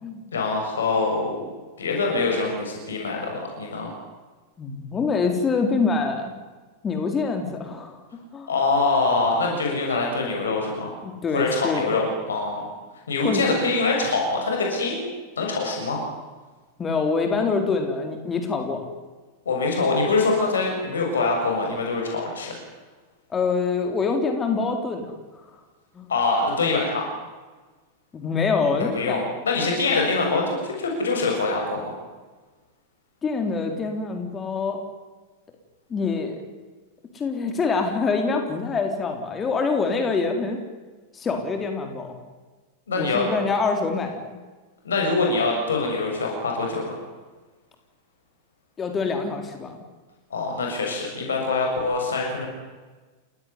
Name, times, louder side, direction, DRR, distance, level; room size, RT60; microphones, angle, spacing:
voice 1, 0.3-1.4 1.8-3.9 8.5-10.9 11.3-12.7 13.1-15.1 15.4-16.0 19.4-22.5 26.1-27.0 28.8-32.0 42.9-43.3 44.8-47.0 50.3-52.5, left 3 dB, 70° left, 0 dB, 6.9 m, -24 dB
voice 2, 4.6-6.3 6.8-8.0 8.3-8.5 11.0-11.9 13.2-13.4 16.8-18.9 23.3-25.1 25.9-26.1 28.1-29.2 33.2-34.8 35.9-36.4 37.1-40.6 41.1-42.2 43.0-44.2 48.8-49.8, left 4 dB, 20° left, 4 dB, 3.8 m, -25 dB
29.5 x 17.5 x 9.7 m, 1.3 s
figure-of-eight pair, 90°, 0 cm